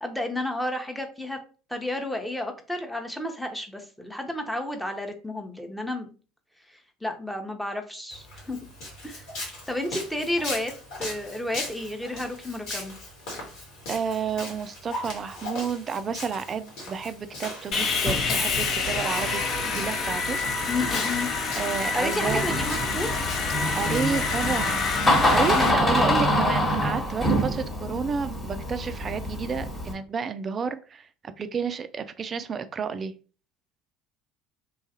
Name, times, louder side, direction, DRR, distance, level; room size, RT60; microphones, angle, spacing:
voice 1, 0.0-1.4 1.7-6.1 7.0-8.6 9.0-9.3 9.7-10.7 11.0-12.9 20.7-21.3 21.9-23.2 25.5-25.8, left 1 dB, 5° left, 0.7 m, -31 dB
Walk footsteps, 8.1-25.5, left 1 dB, 65° left, 1.2 m, -40 dB
voice 2, 13.9-20.4 21.6-22.8 23.8-31.1 31.4-33.1, right 6 dB, 35° right, 0.3 m, -31 dB
Sawing, 17.7-25.7, left 4 dB, 45° left, 0.6 m, -27 dB
Door, 22.3-29.9, equal, 25° left, 1.1 m, -25 dB
3.0 x 2.4 x 2.8 m
figure-of-eight pair, 65°, 0 cm